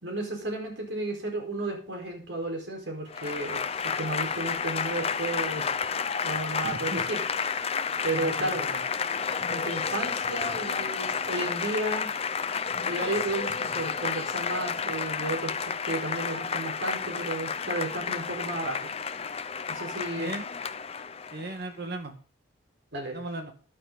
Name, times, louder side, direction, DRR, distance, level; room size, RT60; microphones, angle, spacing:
voice 1, 0.0-7.2 8.0-8.6 9.5-12.1 12.8-18.8 19.7-20.3 22.9-23.2, right 2 dB, 75° right, 2 dB, 4.4 m, -33 dB
Applause / Crowd, 3.1-21.6, left 6 dB, 30° left, 0.7 m, -31 dB
voice 2, 6.6-7.0 8.1-8.8 20.2-20.4 21.3-22.1 23.1-23.5, right 2 dB, 55° right, 6 dB, 1.7 m, -36 dB
13.5 x 11.5 x 3.9 m, 0.39 s
head